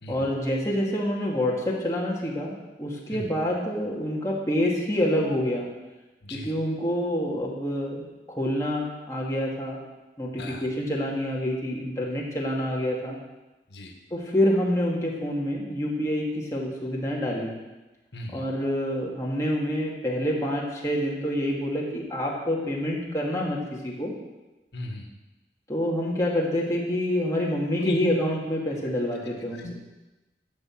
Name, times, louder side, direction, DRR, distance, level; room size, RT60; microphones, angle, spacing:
voice 1, 0.1-5.7 6.3-9.8 10.2-13.2 14.1-17.5 18.3-24.1 25.7-29.7, equal, 15° left, -4 dB, 2.3 m, -27 dB
voice 2, 6.2-6.5 10.4-10.7 13.7-14.0 18.1-18.5 24.7-25.1 27.8-28.1 29.5-29.7, left 1 dB, 80° left, 2 dB, 1.6 m, -36 dB
13.0 x 5.4 x 7.7 m, 1.1 s
head